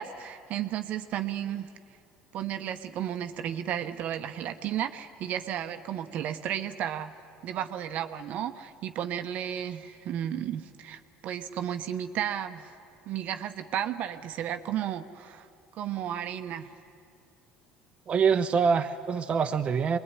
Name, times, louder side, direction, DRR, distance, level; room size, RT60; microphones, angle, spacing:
voice 1, 0.0-1.7 2.3-7.1 7.4-12.7 13.1-15.5 15.8-16.7, right 10 dB, 60° right, 8 dB, 1.1 m, -33 dB
voice 2, 18.1-20.0, right 6 dB, 40° right, 5 dB, 1.0 m, -25 dB
24.5 x 21.0 x 9.9 m, 2.4 s
supercardioid pair, 80°, 3 cm